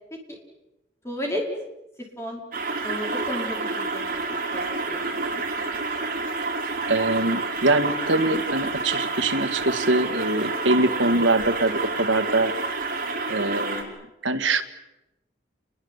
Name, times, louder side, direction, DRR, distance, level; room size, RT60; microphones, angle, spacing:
voice 1, 1.0-1.4 2.0-2.4 2.8-5.4, equal, 15° left, 0 dB, 5.1 m, -34 dB
sound 1, 2.5-13.8, right 3 dB, 45° right, 5.3 m, -29 dB
voice 2, 6.9-12.5 13.3-14.0 14.2-14.6, right 2 dB, 90° right, 10 dB, 2.0 m, -23 dB
29.5 x 22.0 x 8.2 m, 0.94 s
head